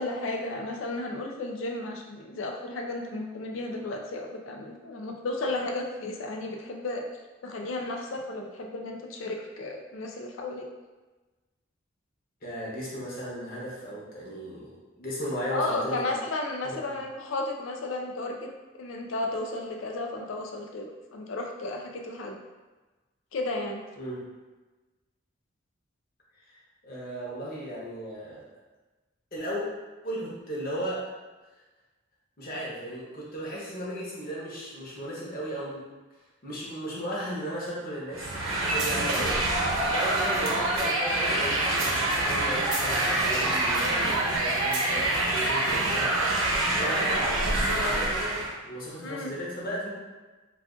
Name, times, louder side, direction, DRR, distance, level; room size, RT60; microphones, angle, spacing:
voice 1, 0.0-7.0 7.4-10.7 15.5-18.5 18.8-22.4 23.3-23.8 49.0-49.3, left 2 dB, 80° left, 2 dB, 0.4 m, -33 dB
voice 2, 12.4-16.0 16.6-17.0 24.0-24.2 26.5-28.5 29.3-29.6 30.0-31.1 32.4-35.9 36.4-39.4 39.8-46.2 46.7-48.4 48.6-49.9, equal, 50° left, -6 dB, 0.9 m, -36 dB
sound 1, 38.1-48.5, right 2 dB, 80° right, 0.7 m, -26 dB
2.4 x 2.4 x 3.6 m, 1.2 s
head